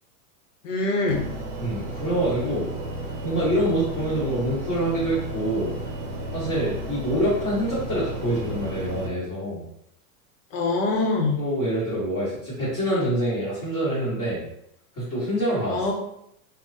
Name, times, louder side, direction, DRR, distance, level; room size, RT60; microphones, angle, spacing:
voice 1, 0.6-1.3 10.5-11.4 15.7-15.9, left 3 dB, 55° left, 1 dB, 0.8 m, -24 dB
sound 1, 1.1-9.1, right 2 dB, 55° right, 0.7 m, -33 dB
voice 2, 1.6-2.7 3.2-5.8 6.3-9.7 11.4-14.4 14.9-15.9, right 1 dB, 20° left, -11 dB, 1.1 m, -26 dB
3.4 x 2.1 x 2.6 m, 0.75 s
supercardioid pair, 180°, 46 cm